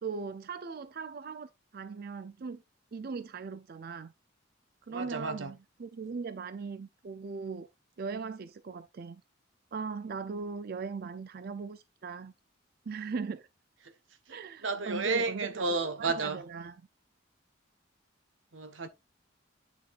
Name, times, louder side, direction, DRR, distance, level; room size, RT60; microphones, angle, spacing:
voice 1, 0.0-2.6 2.9-4.1 4.9-7.7 8.0-9.2 9.7-12.3 12.9-13.5 14.3-16.8, right 5 dB, 50° right, 0.4 m, -39 dB
voice 2, 4.9-5.5 14.6-16.4 18.5-18.9, right 3 dB, 80° right, 1.1 m, -32 dB
9.4 x 6.2 x 2.5 m
head